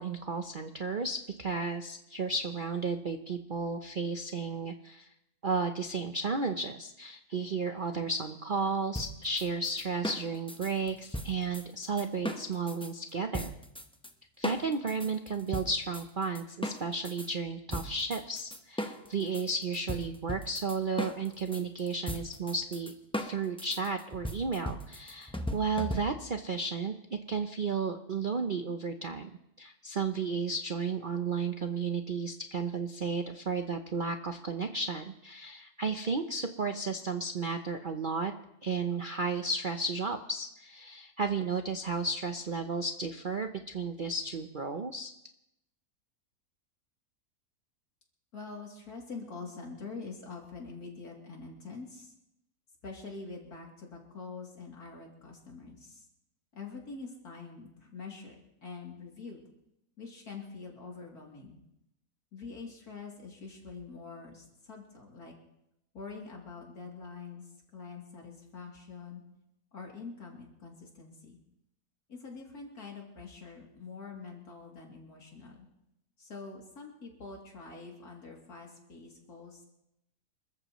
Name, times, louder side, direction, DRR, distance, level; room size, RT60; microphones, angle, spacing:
voice 1, 0.0-5.1 5.4-13.5 14.4-29.3 29.6-38.3 38.6-45.1, right 4 dB, 50° right, 6 dB, 0.6 m, -33 dB
sound 1, 8.9-12.9 13.3-14.1 14.4-17.3 17.7-26.4, equal, 5° left, 0.6 m, -38 dB
voice 2, 48.3-52.1 52.8-56.0 56.5-59.4 60.0-61.6 62.3-65.3 65.9-69.2 69.7-71.4 72.1-75.7 76.2-79.6, left 4 dB, 65° left, -1 dB, 3.4 m, -45 dB
26.5 x 14.0 x 3.1 m, 0.83 s
omnidirectional pair, 1.7 m